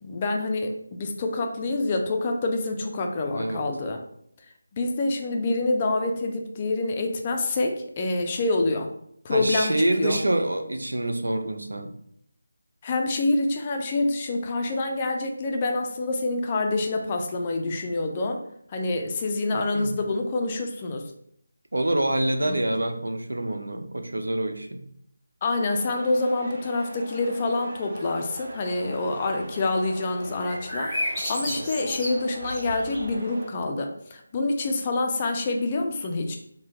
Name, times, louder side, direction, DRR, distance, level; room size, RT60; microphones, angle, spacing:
voice 1, 0.0-4.0 4.7-8.9 9.2-10.2 12.8-18.4 18.7-21.0 22.5-22.6 25.4-36.4, left 2 dB, 25° left, 3 dB, 0.4 m, -27 dB
voice 2, 3.3-3.7 9.3-11.9 19.5-19.9 21.7-24.8 31.5-31.7, right 1 dB, 80° right, 5 dB, 0.5 m, -26 dB
sound 1, 25.7-33.5, right 1 dB, 40° right, 0.7 m, -41 dB
sound 2, 30.4-33.2, equal, ahead, 1.1 m, -32 dB
3.3 x 2.1 x 3.0 m, 0.69 s
figure-of-eight pair, 165°, 0 cm